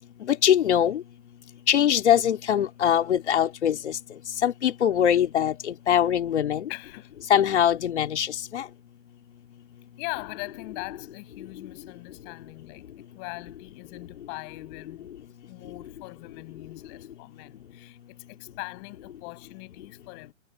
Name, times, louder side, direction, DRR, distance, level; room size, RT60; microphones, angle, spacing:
voice 1, 0.3-1.0 1.7-4.0 4.4-6.7 7.3-8.6, left 9 dB, 60° left, 3.4 m, -22 dB
voice 2, 6.7-7.1 10.0-12.9 13.1-15.1 15.5-20.3, left 40 dB or more, 30° left, 7.8 m, -41 dB
hypercardioid pair, 150°, 38 cm